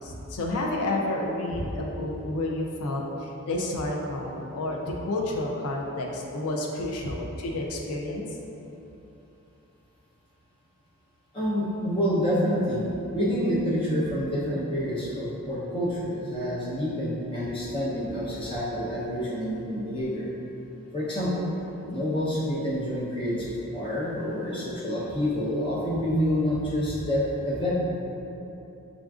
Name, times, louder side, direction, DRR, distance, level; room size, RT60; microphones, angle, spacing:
voice 1, 0.0-8.3, left 2 dB, 85° left, -1 dB, 0.5 m, -30 dB
voice 2, 11.3-12.8 13.1-20.3 20.9-21.5 21.9-27.7, equal, 25° left, -7 dB, 0.7 m, -28 dB
5.8 x 2.5 x 2.3 m, 3.0 s
head